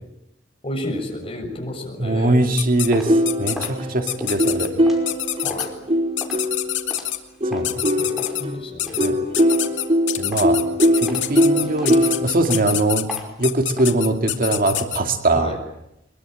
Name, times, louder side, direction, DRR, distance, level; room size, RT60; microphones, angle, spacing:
voice 1, 0.6-2.5 5.4-5.7 8.0-9.1 15.3-15.6, left 1 dB, 30° left, 2 dB, 6.8 m, -31 dB
voice 2, 2.0-3.1 3.4-4.8 7.5-7.8 9.0-9.2 10.2-10.7 11.0-13.1 13.4-15.5, right 2 dB, 50° right, 6 dB, 2.2 m, -21 dB
sound 1, 2.6-2.9 3.3-3.7 4.1-4.7 5.1-5.7 6.2-7.2 7.6-8.4 8.8-9.1 9.3-15.0, left 13 dB, 75° left, 2.5 m, -25 dB
sound 2, 2.6-7.8 8.2-10.0 10.3-10.7 11.1-13.9, equal, ahead, 5.2 m, -38 dB
sound 3, 3.1-6.9 7.4-12.3, equal, 35° right, 3.3 m, -21 dB
23.5 x 23.0 x 9.0 m, 0.81 s
head